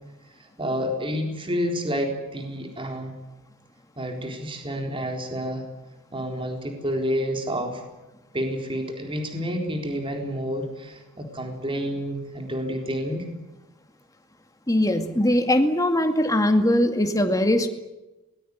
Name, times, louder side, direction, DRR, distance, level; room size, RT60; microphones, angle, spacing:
voice 1, 0.4-3.2 4.0-5.7 6.1-7.8 8.3-13.3, equal, 25° right, 3 dB, 4.0 m, -29 dB
voice 2, 14.7-17.7, left 1 dB, 15° left, 6 dB, 2.2 m, -21 dB
23.0 x 20.0 x 9.7 m, 1.0 s
head